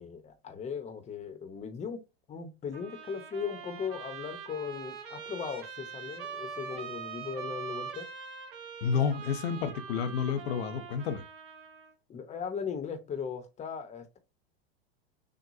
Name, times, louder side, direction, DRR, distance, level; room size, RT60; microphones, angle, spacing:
voice 1, 0.0-2.0 2.3-8.1 12.1-14.2, left 6 dB, 20° left, 0.8 m, -38 dB
Trumpet, 2.7-11.9, right 6 dB, 60° right, 1.6 m, -43 dB
voice 2, 8.8-11.2, left 6 dB, 80° left, 0.8 m, -30 dB
6.3 x 2.2 x 2.6 m
hypercardioid pair, 120°, 31 cm